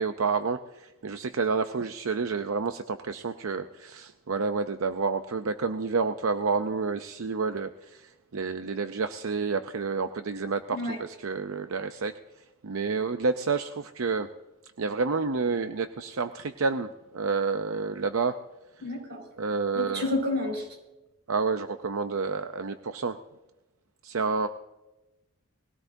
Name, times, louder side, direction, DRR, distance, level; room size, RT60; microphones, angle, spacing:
voice 1, 0.0-12.2 12.6-14.3 14.8-18.4 19.4-20.1 21.3-23.2 24.0-24.5, right 4 dB, 70° right, 9 dB, 0.6 m, -29 dB
voice 2, 10.7-11.0 18.8-19.2 19.7-20.7, left 2 dB, 50° right, 0 dB, 5.5 m, -30 dB
21.0 x 17.0 x 2.7 m, 1.0 s
head